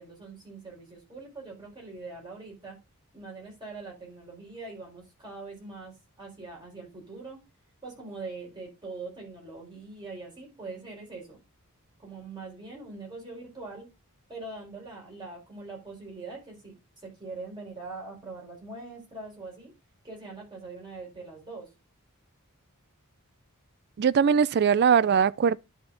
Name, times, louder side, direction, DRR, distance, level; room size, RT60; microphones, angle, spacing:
voice 1, 0.0-2.8 3.1-7.4 7.8-11.4 12.0-13.9 14.3-16.8 17.0-19.7 20.0-21.7, right 3 dB, 20° right, 4.4 m, -42 dB
voice 2, 24.0-25.6, right 7 dB, 50° right, 0.3 m, -21 dB
11.0 x 4.3 x 3.8 m
head